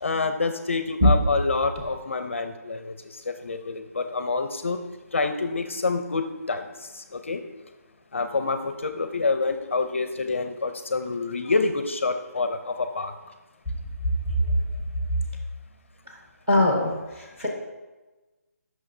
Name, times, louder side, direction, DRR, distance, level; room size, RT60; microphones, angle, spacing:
voice 1, 0.0-4.8 5.1-7.4 8.1-13.1, left 3 dB, 50° left, 8 dB, 0.5 m, -27 dB
voice 2, 14.0-14.6 15.1-15.2 16.1-16.2 16.5-17.5, left 1 dB, 10° right, 0 dB, 1.1 m, -22 dB
14.5 x 6.3 x 2.7 m, 1.2 s
hypercardioid pair, 180°, 9 cm